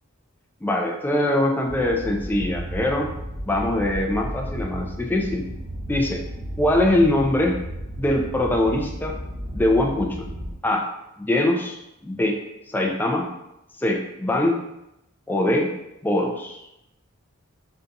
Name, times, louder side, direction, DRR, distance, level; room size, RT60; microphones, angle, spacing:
voice 1, 0.6-3.1 3.5-5.5 5.9-6.2 6.6-7.6 8.0-9.2 9.5-10.3 10.6-10.9 11.2-12.4 12.7-13.3 13.8-14.6 15.3-15.7 16.0-16.6, left 1 dB, 10° left, 1 dB, 0.3 m, -22 dB
sound 1, 1.7-10.5, equal, 30° right, 0.8 m, -33 dB
3.8 x 2.3 x 2.7 m, 0.87 s
head